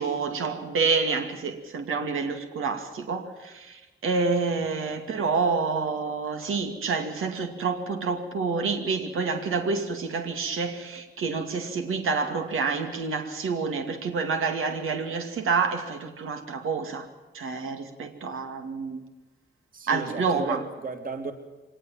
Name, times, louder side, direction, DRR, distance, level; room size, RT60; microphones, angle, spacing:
voice 1, 0.0-17.1 17.3-19.0 19.9-20.6, right 4 dB, 85° right, 2.4 m, -28 dB
voice 2, 19.7-21.3, right 4 dB, 45° right, 3.0 m, -34 dB
24.5 x 20.0 x 7.4 m
wide cardioid pair, 170°, 21 cm